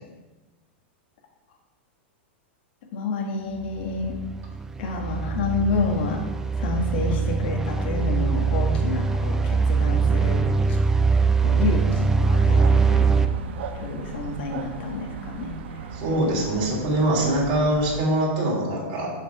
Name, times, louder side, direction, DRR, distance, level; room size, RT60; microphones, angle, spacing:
voice 1, 2.9-4.2 4.8-6.2 6.6-10.4 11.4-13.1 13.7-15.8, left 3 dB, 60° left, 0 dB, 1.7 m, -29 dB
sound 1, 3.6-13.3, right 4 dB, 5° right, 0.4 m, -22 dB
sound 2, 12.6-18.0, right 6 dB, 70° right, 0.9 m, -36 dB
voice 2, 15.9-19.1, right 1 dB, 45° right, -4 dB, 3.1 m, -23 dB
7.1 x 5.9 x 6.0 m, 1.2 s
supercardioid pair, 160°, 6 cm